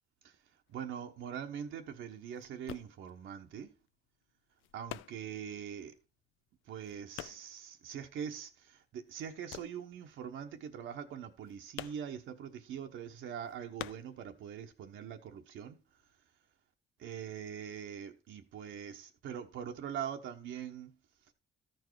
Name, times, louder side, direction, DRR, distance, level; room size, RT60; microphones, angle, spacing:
sound 1, 0.7-8.7 8.9-14.8 15.1-16.1, left 14 dB, 85° left, 0.4 m, -49 dB
voice 1, 0.7-3.7 4.7-5.9 6.7-15.8 17.0-21.0, right 8 dB, 80° right, 1.1 m, -43 dB
13.0 x 4.7 x 4.7 m
cardioid pair, 90°, 20 cm